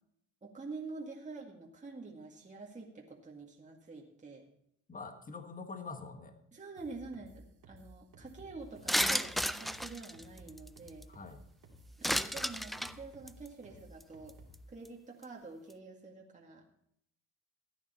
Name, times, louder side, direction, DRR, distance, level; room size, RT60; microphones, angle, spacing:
voice 1, 0.4-4.4 6.5-11.1 12.1-14.4 14.7-16.6, right 3 dB, 25° right, -1 dB, 2.0 m, -47 dB
voice 2, 4.9-6.4 11.1-11.4, left 4 dB, 25° left, 7 dB, 1.5 m, -45 dB
sound 1, 6.8-14.7, equal, 85° right, 2.7 m, -55 dB
sound 2, 8.9-11.0 12.0-12.9 13.3-13.5 14.0-14.1 14.3-14.5 14.8-14.9, equal, ahead, 0.4 m, -32 dB
14.5 x 9.3 x 4.3 m, 0.70 s
cardioid pair, 90°, 30 cm